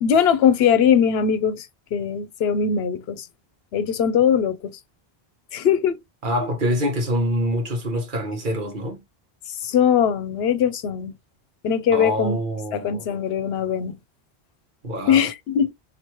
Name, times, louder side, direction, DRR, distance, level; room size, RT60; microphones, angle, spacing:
voice 1, 0.0-3.3 3.7-4.8 5.5-6.0 6.4-6.5 9.5-11.1 11.6-12.4 12.7-14.0 15.1-15.7, left 8 dB, 80° left, 0.8 m, -21 dB
voice 2, 6.2-9.0 11.9-13.0 14.8-15.3, equal, 55° right, 1.1 m, -25 dB
3.0 x 2.7 x 4.4 m
omnidirectional pair, 1.0 m